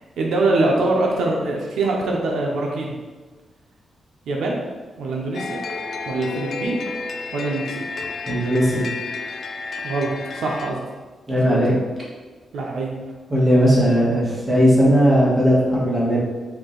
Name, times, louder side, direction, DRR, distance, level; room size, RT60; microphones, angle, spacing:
voice 1, 0.2-3.0 4.3-4.6 5.0-5.6 6.0-6.8 7.3-7.8 9.8-10.8 11.3-11.6 12.5-12.9, right 2 dB, 85° right, -1 dB, 0.7 m, -23 dB
sound 1, 5.3-10.7, left 4 dB, 50° left, 0.4 m, -31 dB
voice 2, 8.3-8.9 11.3-11.7 13.3-16.2, equal, 15° right, -7 dB, 1.4 m, -17 dB
4.7 x 2.7 x 3.8 m, 1.3 s
wide cardioid pair, 145°, 0 cm